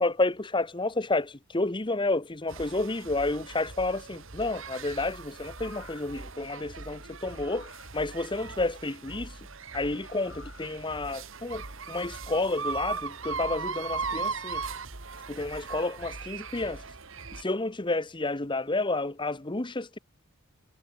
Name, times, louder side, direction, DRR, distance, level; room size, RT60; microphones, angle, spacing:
voice 1, 0.0-9.4 9.7-14.6 15.3-16.8 17.4-20.0, left 2 dB, 20° left, 1.0 m, -30 dB
sound 1, 2.5-17.4, right 5 dB, 60° right, 2.1 m, -39 dB
sound 2, 5.6-6.2 7.2-7.9 10.0-10.7 11.2-11.3, left 5 dB, 60° left, 5.2 m, -52 dB
head